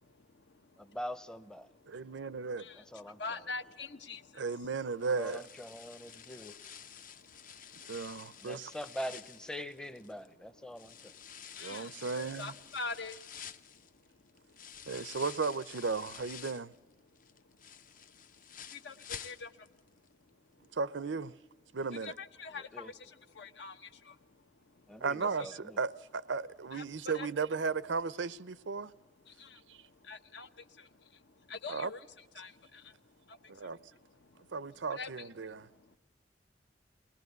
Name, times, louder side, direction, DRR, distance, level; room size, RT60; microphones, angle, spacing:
voice 1, 0.0-1.0 1.6-2.2 2.6-4.5 5.8-8.5 10.1-14.2 14.6-14.8 17.2-17.3 17.6-17.7 18.1-18.3 18.5-20.0 20.2-20.7 22.0-25.0 25.4-25.5 26.7-27.3 29.2-32.1 32.3-34.5 34.9-36.0, left 4 dB, 70° left, 1.1 m, -47 dB
voice 2, 0.8-1.7 2.9-3.2 5.2-6.6 8.4-11.1 22.7-22.9 24.9-25.8, equal, 5° left, 0.7 m, -43 dB
voice 3, 1.9-2.7 4.3-5.4 7.9-8.7 11.6-12.5 14.9-16.7 20.7-21.3 21.7-22.1 25.0-28.9 29.7-29.8 31.7-31.9 33.5-33.8 34.5-35.7, right 4 dB, 90° right, 0.6 m, -35 dB
sound 1, 5.0-10.3 10.8-16.8 17.2-19.8 20.1-20.2 20.6-20.7, left 8 dB, 45° left, 0.7 m, -50 dB
22.0 x 20.0 x 8.1 m
head